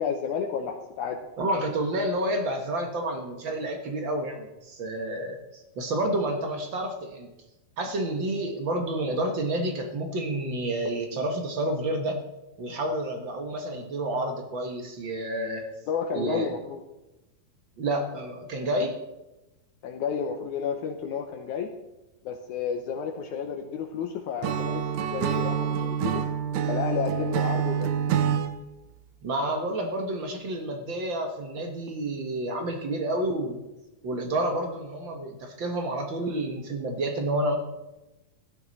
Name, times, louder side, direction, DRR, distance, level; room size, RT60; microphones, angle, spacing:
voice 1, 0.0-1.2 15.9-16.8 19.8-21.7 22.3-26.3 26.7-27.9, left 7 dB, 70° left, 5 dB, 2.0 m, -31 dB
voice 2, 1.4-7.3 7.8-12.2 12.6-15.7 16.1-16.5 17.8-18.9 29.2-33.6 34.0-37.6, right 1 dB, 55° right, 4 dB, 1.3 m, -29 dB
Acoustic guitar / Strum, 24.4-28.5, right 8 dB, 70° right, 1.7 m, -27 dB
15.5 x 12.0 x 4.1 m, 0.99 s
omnidirectional pair, 4.1 m